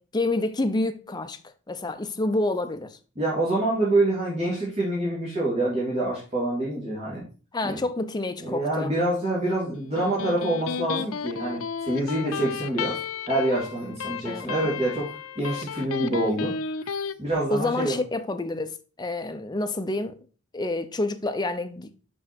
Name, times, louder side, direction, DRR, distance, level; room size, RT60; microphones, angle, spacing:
voice 1, 0.0-1.4 1.7-3.0 7.5-8.9 14.2-14.6 17.5-20.2 20.5-21.9, left 2 dB, 20° left, 0.6 m, -28 dB
voice 2, 3.2-7.2 7.6-7.8 8.4-13.0 13.3-16.5 17.2-18.0, right 1 dB, 30° right, 2.6 m, -26 dB
Electric guitar, 9.7-17.1, left 6 dB, 80° left, 0.5 m, -33 dB
6.0 x 5.5 x 4.3 m
head